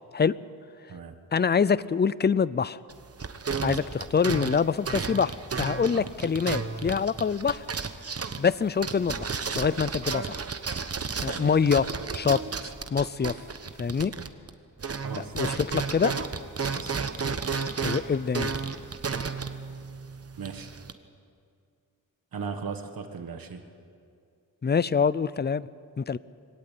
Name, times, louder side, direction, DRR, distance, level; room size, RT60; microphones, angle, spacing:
voice 1, 1.3-2.8 3.6-7.6 8.4-9.3 9.5-10.4 11.2-11.9 12.1-12.4 12.9-13.4 13.8-14.1 15.2-16.1 17.8-18.5 24.6-25.7 26.0-26.2, left 6 dB, 30° left, 19 dB, 0.5 m, -25 dB
sound 1, 2.9-14.5 14.8-20.9, right 5 dB, 45° right, 1.1 m, -33 dB
voice 2, 15.0-15.6 16.7-17.0 20.4-20.7 22.3-23.6, right 5 dB, 80° right, 7 dB, 1.5 m, -38 dB
24.0 x 17.5 x 8.5 m, 2.3 s
wide cardioid pair, 100°, 35 cm